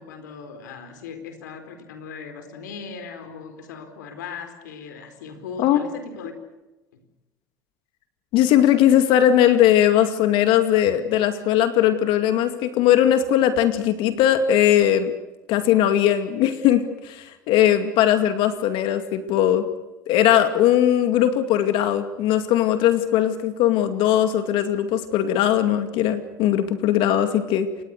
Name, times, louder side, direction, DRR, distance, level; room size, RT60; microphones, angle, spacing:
voice 1, 0.0-6.3 6.9-7.0, left 5 dB, 85° left, 8 dB, 4.4 m, -38 dB
voice 2, 8.3-15.1 15.5-19.6 20.1-27.7, left 11 dB, 65° left, 9 dB, 2.3 m, -19 dB
28.5 x 24.5 x 6.7 m, 1.1 s
hypercardioid pair, 80°, 10 cm